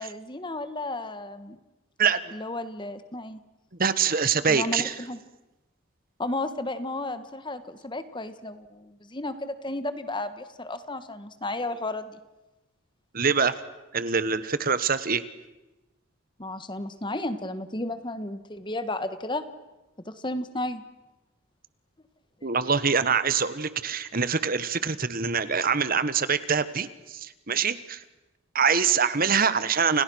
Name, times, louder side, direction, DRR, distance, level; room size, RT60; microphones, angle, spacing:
voice 1, 0.0-1.6 2.3-3.4 4.5-5.2 6.2-12.2 16.4-19.4 20.0-20.8 22.4-22.5, left 2 dB, 20° left, 11 dB, 1.4 m, -33 dB
voice 2, 2.0-2.3 3.8-4.9 13.1-13.6 13.9-15.2 22.4-28.0 28.5-30.0, right 6 dB, 40° right, 14 dB, 1.3 m, -24 dB
30.0 x 29.0 x 6.3 m, 1.0 s
head